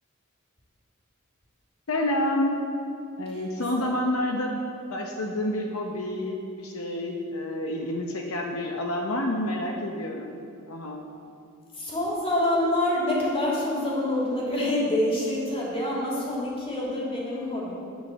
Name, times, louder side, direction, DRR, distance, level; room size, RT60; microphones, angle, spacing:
voice 1, 1.9-2.6 3.2-4.6 4.9-10.4 10.7-11.1, left 1 dB, 75° left, 1 dB, 0.9 m, -28 dB
voice 2, 11.7-17.7, left 1 dB, 30° left, -5 dB, 3.0 m, -26 dB
11.0 x 6.4 x 7.2 m, 2.7 s
head